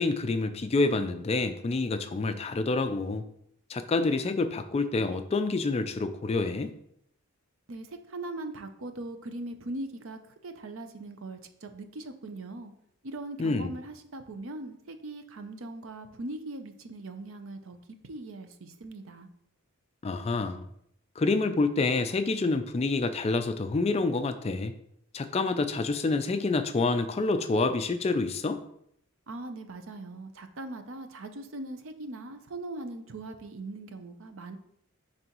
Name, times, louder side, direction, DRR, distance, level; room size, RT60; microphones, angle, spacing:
voice 1, 0.0-3.2 3.7-6.7 13.4-13.8 20.0-20.7 21.2-24.7 25.1-28.6, left 3 dB, 30° left, 9 dB, 0.3 m, -27 dB
voice 2, 7.7-12.7 13.0-17.8 18.0-19.3 29.3-34.6, right 2 dB, 65° right, 8 dB, 0.6 m, -40 dB
9.2 x 3.4 x 3.0 m, 0.73 s
head